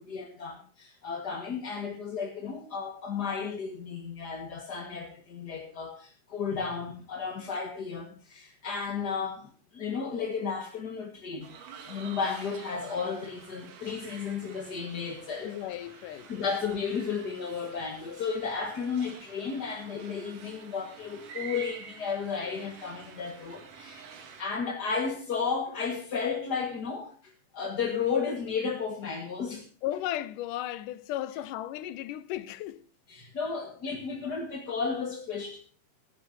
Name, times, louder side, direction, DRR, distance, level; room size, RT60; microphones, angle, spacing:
voice 1, 0.0-11.6 11.9-15.6 16.3-24.0 24.4-29.7 33.1-35.6, left 5 dB, 40° left, 1.6 m, -33 dB
sound 1, 11.4-24.4, right 6 dB, 65° right, 3.3 m, -48 dB
voice 2, 15.4-16.3 29.8-32.8, left 13 dB, 75° left, 2.2 m, -35 dB
21.0 x 10.5 x 2.8 m
omnidirectional pair, 4.1 m